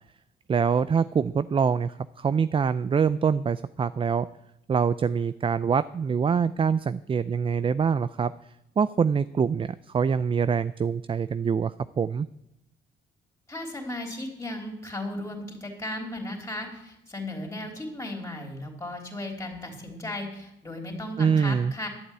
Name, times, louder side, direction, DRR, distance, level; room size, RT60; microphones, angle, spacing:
voice 1, 0.5-4.3 4.7-8.3 8.8-12.3 21.2-21.7, right 6 dB, 25° right, 15 dB, 0.4 m, -25 dB
voice 2, 13.5-21.9, left 1 dB, 15° left, 2 dB, 3.6 m, -36 dB
11.5 x 8.0 x 9.0 m, 0.85 s
cardioid pair, 90°, 20 cm